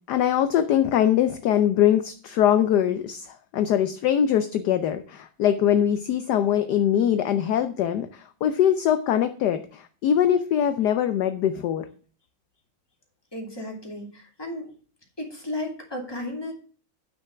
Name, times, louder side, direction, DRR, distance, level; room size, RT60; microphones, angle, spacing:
voice 1, 0.1-11.8, left 10 dB, 70° left, 9 dB, 1.0 m, -22 dB
voice 2, 13.3-14.7 15.2-16.5, left 1 dB, 10° left, 0 dB, 2.6 m, -34 dB
8.8 x 6.2 x 6.0 m, 0.41 s
omnidirectional pair, 2.3 m